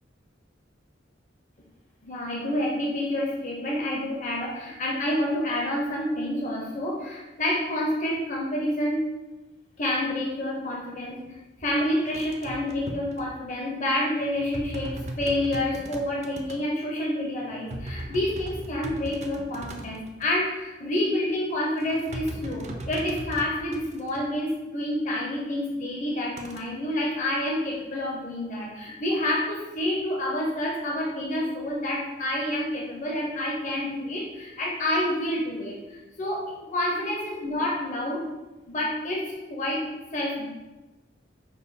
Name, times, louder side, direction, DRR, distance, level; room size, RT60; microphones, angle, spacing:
voice 1, 2.0-9.0 9.8-11.2 11.6-38.3 38.7-39.8 40.1-40.5, left 1 dB, 40° left, -3 dB, 0.6 m, -28 dB
sound 1, 11.3-11.4 11.6-13.3 14.2-16.6 17.4-20.3 21.8-24.2 26.4-26.6, right 2 dB, 40° right, 0.4 m, -38 dB
5.2 x 2.2 x 4.0 m, 1.1 s
head